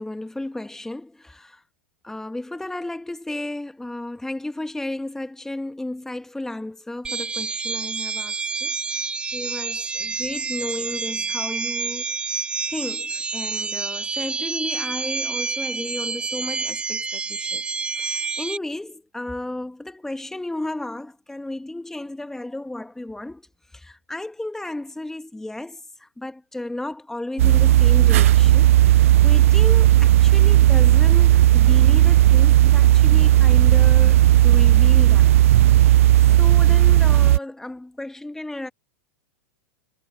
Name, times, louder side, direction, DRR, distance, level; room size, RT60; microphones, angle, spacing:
voice 1, 0.0-1.6 2.0-12.2 12.7-17.6 17.9-23.5 23.7-35.4 35.8-38.7, left 1 dB, 5° left, 1.7 m, -33 dB
sound 1, 7.0-18.6, right 5 dB, 15° right, 1.9 m, -28 dB
sound 2, 27.4-37.4, right 13 dB, 65° right, 0.7 m, -14 dB
hypercardioid pair, 95°, 8 cm